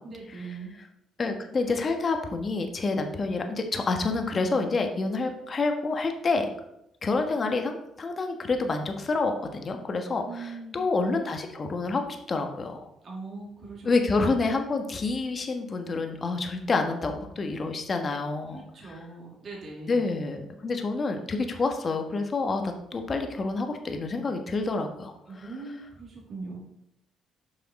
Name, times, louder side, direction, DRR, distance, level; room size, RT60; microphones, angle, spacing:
voice 1, 0.0-0.7 10.2-10.8 13.0-13.9 18.5-20.0 25.3-26.6, right 3 dB, 50° right, -3 dB, 2.6 m, -40 dB
voice 2, 1.2-6.5 7.0-12.9 13.8-18.6 19.9-25.1, left 3 dB, 40° left, 5 dB, 1.3 m, -28 dB
7.7 x 5.6 x 4.2 m, 0.80 s
supercardioid pair, 70°, 0 cm